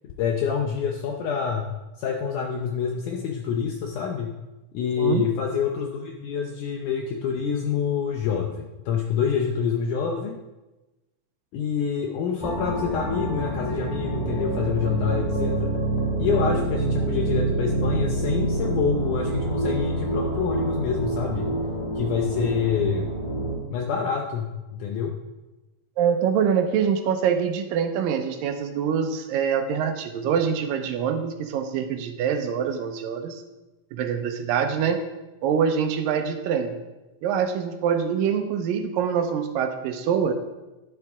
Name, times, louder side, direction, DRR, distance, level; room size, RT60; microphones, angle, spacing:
voice 1, 0.0-1.7 2.0-4.3 4.7-10.4 11.5-15.7 16.2-21.5 22.0-23.1 23.7-25.1, left 7 dB, 75° left, 2 dB, 2.2 m, -27 dB
voice 2, 5.0-5.3 26.0-33.4 33.9-35.0 35.4-36.8 37.2-40.3, right 7 dB, 85° right, 6 dB, 2.5 m, -25 dB
sound 1, 12.4-23.6, right 2 dB, 15° left, 1.6 m, -26 dB
11.0 x 11.0 x 3.6 m, 1.1 s
omnidirectional pair, 3.9 m